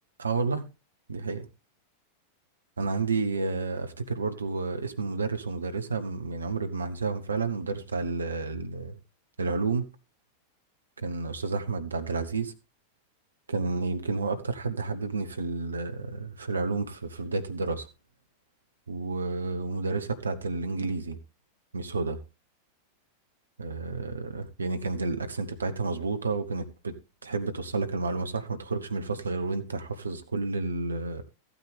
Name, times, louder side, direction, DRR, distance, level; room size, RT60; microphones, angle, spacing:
voice 1, 0.2-0.6 1.1-1.5 2.8-9.0 9.4-9.9 11.0-12.5 13.5-17.9 18.9-21.2 21.7-22.2 23.6-26.9 27.2-31.2, right 3 dB, 75° right, 1.2 m, -30 dB
14.0 x 9.1 x 3.4 m
figure-of-eight pair, 90°, 0 cm